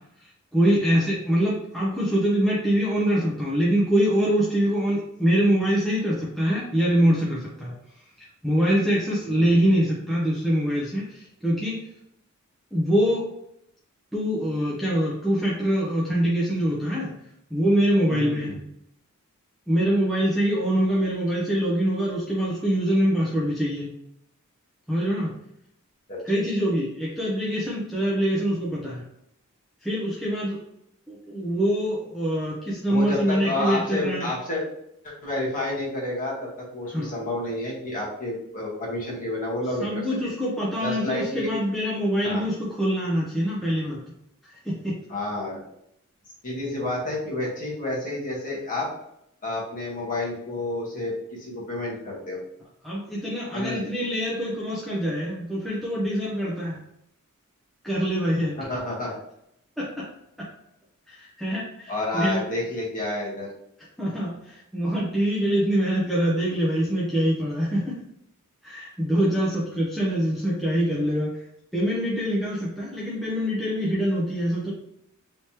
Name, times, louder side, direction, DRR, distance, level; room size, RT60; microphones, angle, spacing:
voice 1, 0.5-7.7 8.4-11.8 12.7-13.3 14.1-17.1 17.5-18.6 19.7-23.9 24.9-25.3 26.2-29.0 29.8-30.6 31.1-34.3 36.9-37.1 39.8-44.0 44.6-44.9 52.8-56.8 57.8-58.5 59.8-60.1 61.1-62.4 64.0-67.9 68.6-71.3 71.7-74.7, equal, ahead, -7 dB, 0.6 m, -24 dB
voice 2, 9.2-9.7 18.1-18.6 26.1-26.2 32.9-34.6 35.0-40.1 40.8-41.5 42.2-42.5 45.1-45.6 46.4-48.9 49.4-52.4 53.5-53.9 58.6-59.1 61.9-63.5, left 2 dB, 35° left, -5 dB, 1.4 m, -30 dB
3.3 x 3.0 x 2.9 m, 0.76 s
head